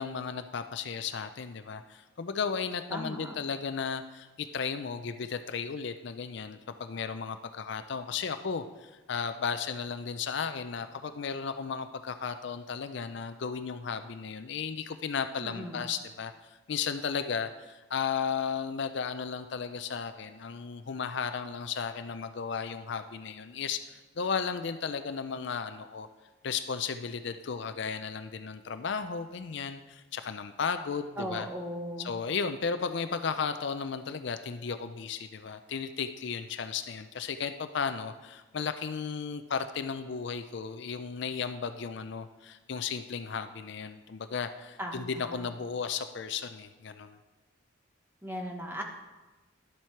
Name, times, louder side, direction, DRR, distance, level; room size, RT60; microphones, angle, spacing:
voice 1, 0.0-26.1 26.4-31.5 32.0-47.2, left 6 dB, 55° left, 10 dB, 0.4 m, -35 dB
voice 2, 2.9-3.4 15.4-15.9 31.2-32.2 44.8-45.5 48.2-48.8, equal, 10° right, 2 dB, 1.0 m, -38 dB
11.5 x 7.5 x 4.5 m, 1.1 s
head